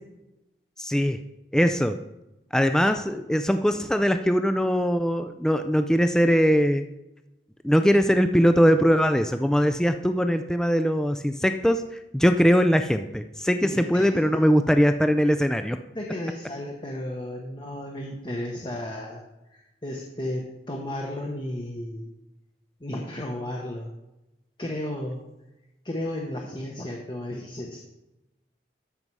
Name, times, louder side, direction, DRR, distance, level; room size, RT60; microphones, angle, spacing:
voice 1, 0.8-1.2 1.5-2.0 2.5-6.9 7.6-11.8 12.1-15.8, equal, 5° left, 8 dB, 0.4 m, -21 dB
voice 2, 13.6-14.4 15.9-19.2 19.5-22.1 22.8-23.9 24.6-25.2 25.8-27.8, left 1 dB, 25° left, 0 dB, 1.0 m, -33 dB
13.0 x 5.5 x 4.7 m, 0.94 s
head